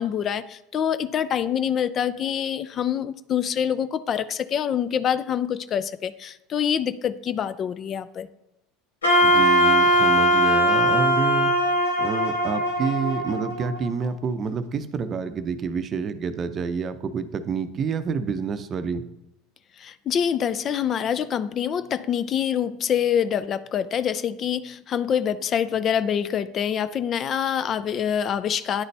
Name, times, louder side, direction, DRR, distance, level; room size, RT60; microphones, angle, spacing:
voice 1, 0.0-8.3 19.8-28.8, left 8 dB, 40° left, 14 dB, 0.3 m, -25 dB
Wind instrument woodwind instrument, 9.0-14.1, equal, 90° left, 1.2 m, -20 dB
voice 2, 9.2-11.5 12.0-19.0, right 5 dB, 40° right, 11 dB, 0.6 m, -28 dB
9.5 x 4.0 x 3.3 m, 0.89 s
hypercardioid pair, 80°, 0 cm